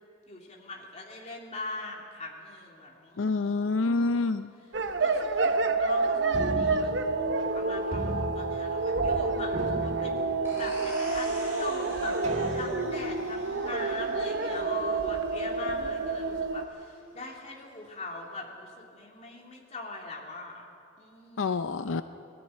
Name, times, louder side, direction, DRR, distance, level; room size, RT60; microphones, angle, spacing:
voice 1, 0.3-3.2 3.8-4.4 5.0-10.2 10.6-20.7 21.0-21.7, left 2 dB, 35° left, -1 dB, 2.9 m, -41 dB
voice 2, 3.2-4.5 21.4-22.0, left 3 dB, 80° left, 10 dB, 0.5 m, -27 dB
sound 1, 4.7-16.6, right 3 dB, 65° right, 1.0 m, -29 dB
sound 2, 6.3-7.6 7.9-9.2 9.5-10.8 11.4-11.5 12.2-13.1, equal, 35° right, 2.0 m, -36 dB
sound 3, 10.4-15.8, right 1 dB, 10° right, 7.2 m, -46 dB
20.0 x 13.5 x 10.0 m, 2.5 s
head